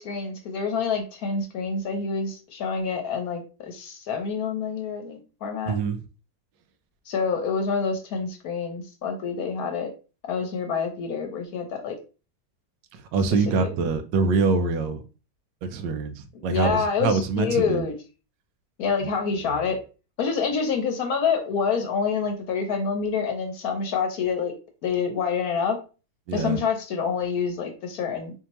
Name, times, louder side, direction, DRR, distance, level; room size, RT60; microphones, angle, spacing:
voice 1, 0.0-5.8 7.1-9.9 10.3-12.0 13.6-13.7 16.5-17.9 18.8-19.8 20.2-24.5 24.8-25.8 26.3-28.3, left 5 dB, 65° left, 5 dB, 1.0 m, -27 dB
voice 2, 5.7-6.0 12.9-15.0 15.6-17.9 19.0-19.1 19.4-19.7 26.3-26.6, right 4 dB, 90° right, 9 dB, 1.3 m, -25 dB
4.3 x 2.8 x 2.9 m, 0.34 s
omnidirectional pair, 1.9 m